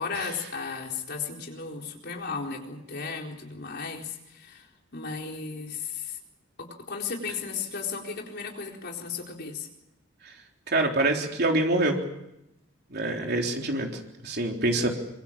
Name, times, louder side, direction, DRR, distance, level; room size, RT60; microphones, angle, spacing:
voice 1, 0.0-6.2 6.6-9.7, left 5 dB, 55° left, 1 dB, 4.2 m, -35 dB
voice 2, 10.7-12.0 12.9-14.9, right 2 dB, 55° right, 2 dB, 3.8 m, -26 dB
25.0 x 23.0 x 7.4 m, 0.86 s
head